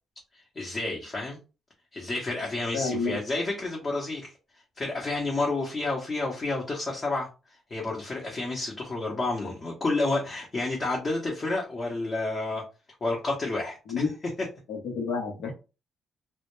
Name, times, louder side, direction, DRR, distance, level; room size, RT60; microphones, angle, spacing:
voice 1, 0.3-1.4 1.9-4.3 4.8-7.3 7.7-12.6 13.0-13.8, left 2 dB, 35° left, -2 dB, 0.7 m, -30 dB
voice 2, 2.7-3.2 13.9-14.1 14.7-15.5, left 4 dB, 80° left, 3 dB, 0.8 m, -29 dB
2.1 x 2.1 x 3.0 m, 0.31 s
cardioid pair, 90°, 0 cm